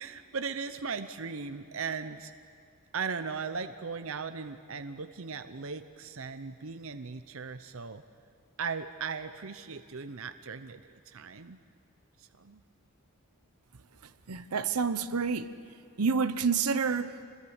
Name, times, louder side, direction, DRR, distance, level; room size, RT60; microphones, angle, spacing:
voice 1, 0.0-2.3 2.9-8.0 8.6-11.6 12.2-12.6, right 5 dB, 65° right, 0.8 m, -38 dB
voice 2, 14.3-15.5 16.0-17.2, right 5 dB, 90° right, 0.9 m, -28 dB
28.0 x 21.0 x 8.3 m
head